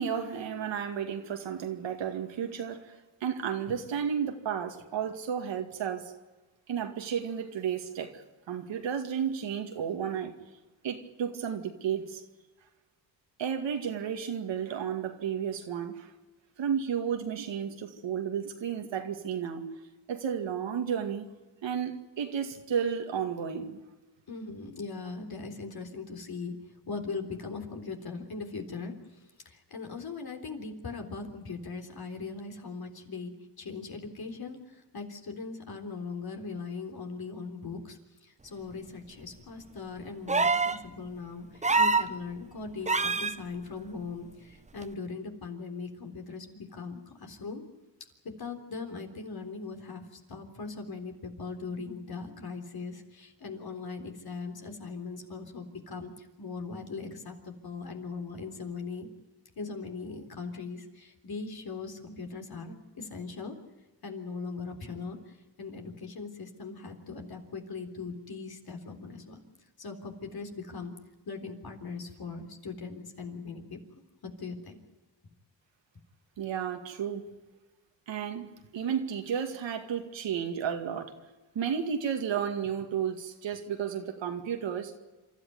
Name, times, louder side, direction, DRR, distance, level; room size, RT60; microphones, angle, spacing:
voice 1, 0.0-2.9 3.2-6.1 6.7-10.3 10.8-12.2 13.4-16.1 16.6-19.6 20.1-21.3 21.6-23.8 76.4-77.2 78.1-81.1 81.5-84.9, right 8 dB, 90° right, 2.3 m, -32 dB
voice 2, 24.3-26.5 26.9-47.6 48.4-59.1 59.6-63.6 64.0-69.4 69.8-70.9 71.3-73.8 74.2-74.8, left 4 dB, 55° left, 3.7 m, -40 dB
sound 1, 40.3-40.8 41.6-42.1 42.9-43.3 44.8-44.9, right 3 dB, 15° right, 0.8 m, -25 dB
27.5 x 13.5 x 9.5 m
cardioid pair, 80°, 43 cm